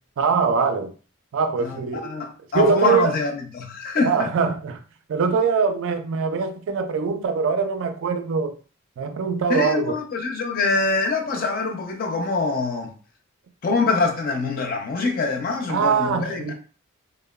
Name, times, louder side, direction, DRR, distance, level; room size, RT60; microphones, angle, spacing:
voice 1, 0.2-0.9 1.3-2.0 2.5-3.2 4.0-4.8 5.1-8.6 9.0-10.0 15.7-16.5, right 5 dB, 60° right, 0.3 m, -22 dB
voice 2, 2.0-4.3 9.5-12.9 13.6-16.5, left 4 dB, 40° left, 0.4 m, -24 dB
2.8 x 2.0 x 2.2 m
head